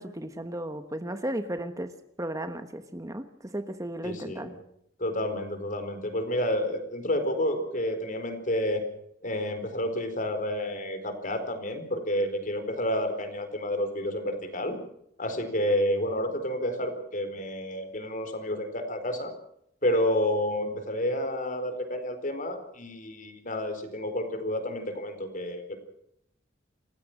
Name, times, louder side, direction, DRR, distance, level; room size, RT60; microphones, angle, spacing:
voice 1, 0.0-1.9 2.2-3.3 3.5-4.5, right 1 dB, 20° right, 9 dB, 1.2 m, -34 dB
voice 2, 4.0-4.6 5.0-8.8 9.2-14.8 15.2-19.3 19.8-25.8, left 1 dB, 45° left, 8 dB, 4.4 m, -30 dB
28.0 x 16.0 x 6.2 m, 0.73 s
head